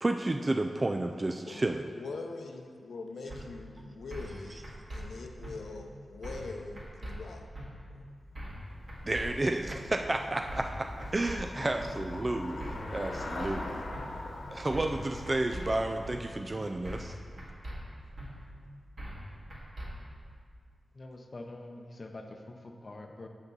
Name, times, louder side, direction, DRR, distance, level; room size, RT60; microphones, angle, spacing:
voice 1, 0.0-1.9 9.0-13.8 14.5-17.1, right 2 dB, 30° right, 5 dB, 0.3 m, -31 dB
voice 2, 1.5-7.5 7.9-8.1, left 3 dB, 85° left, 4 dB, 0.7 m, -43 dB
sound 1, 3.3-3.4 4.1-4.4 4.6-5.0 5.4-5.5 6.2-6.5 6.8-7.1 7.5-7.7 8.3-8.6 8.9-9.3 9.7-9.8 10.5-10.7 11.0-11.4 11.8-11.9 12.6-12.9 13.1-13.5 13.9-14.0 14.7-15.0 15.3-15.6 16.0-16.2 16.8-17.1 17.4-17.8 18.2-18.3 19.0-19.2 19.5-19.9, right 1 dB, 55° right, 2.0 m, -41 dB
Traffic noise roadway noise / Bicycle, 8.2-17.4, left 2 dB, 65° left, 1.1 m, -43 dB
voice 3, 20.9-23.3, left 2 dB, 40° left, 3 dB, 0.6 m, -45 dB
8.2 x 6.7 x 4.0 m, 2.1 s
wide cardioid pair, 100°, 0 cm